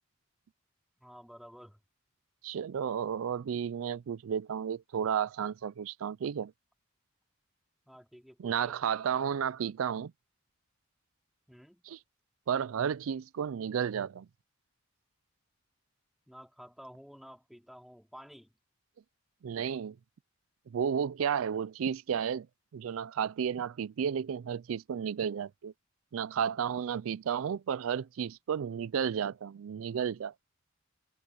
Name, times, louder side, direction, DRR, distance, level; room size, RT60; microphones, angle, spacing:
voice 1, 1.0-1.8 7.8-8.8 11.5-11.9 16.3-18.5, equal, ahead, 3.3 m, -52 dB
voice 2, 2.4-6.5 8.4-10.1 11.8-12.0 12.5-14.3 19.4-20.0 20.7-22.5 22.7-25.7 26.1-30.3, right 7 dB, 75° right, 0.4 m, -32 dB
head